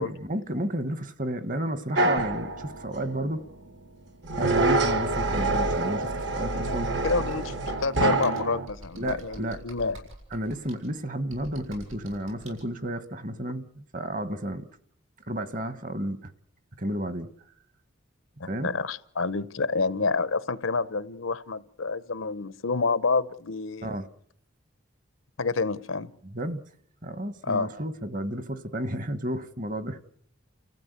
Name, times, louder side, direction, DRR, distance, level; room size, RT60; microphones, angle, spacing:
voice 1, 0.0-3.5 4.4-7.0 9.0-9.6 10.3-14.7 15.3-16.3 16.8-17.3 18.5-18.7 23.8-24.1 26.2-26.6 27.0-30.0, right 1 dB, 40° right, 1.2 m, -32 dB
sound 1, 2.0-3.2 4.2-8.7, right 2 dB, 55° right, 1.4 m, -26 dB
Computer keyboard, 4.8-12.6, right 1 dB, 85° right, 7.5 m, -48 dB
voice 2, 6.6-7.5 7.8-10.0 18.4-23.9 25.4-26.1 27.4-27.7, left 4 dB, 80° left, 0.9 m, -28 dB
30.0 x 15.0 x 8.2 m
head